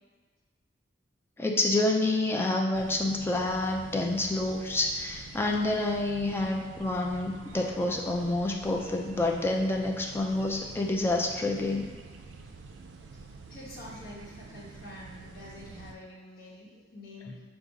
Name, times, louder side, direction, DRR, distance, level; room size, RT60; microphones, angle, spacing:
voice 1, 1.4-11.9, left 2 dB, 15° left, 0 dB, 0.4 m, -28 dB
sound 1, 2.7-16.0, right 4 dB, 75° right, 0.4 m, -47 dB
voice 2, 13.5-17.5, left 1 dB, 55° left, -7 dB, 1.2 m, -46 dB
4.9 x 2.4 x 3.9 m, 1.5 s
head